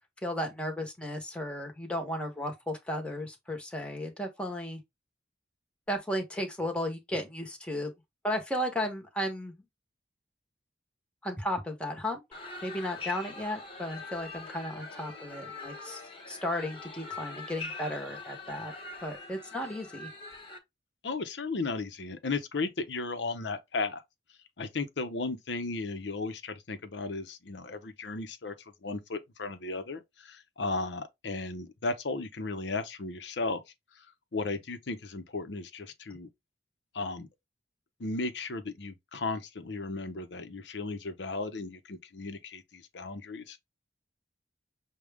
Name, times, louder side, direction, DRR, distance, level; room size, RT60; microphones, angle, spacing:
voice 1, 0.2-4.8 5.9-7.9 8.2-9.6 11.2-12.2 12.6-16.0 16.3-18.7 19.0-20.1, equal, 5° left, 1.0 m, -34 dB
sound 1, 12.3-20.6, left 3 dB, 30° left, 1.1 m, -43 dB
voice 2, 21.0-24.0 24.6-28.5 28.8-33.6 34.0-34.1 34.3-36.3 36.9-37.3 38.0-43.6, left 3 dB, 85° left, 0.7 m, -35 dB
6.3 x 2.3 x 3.4 m
head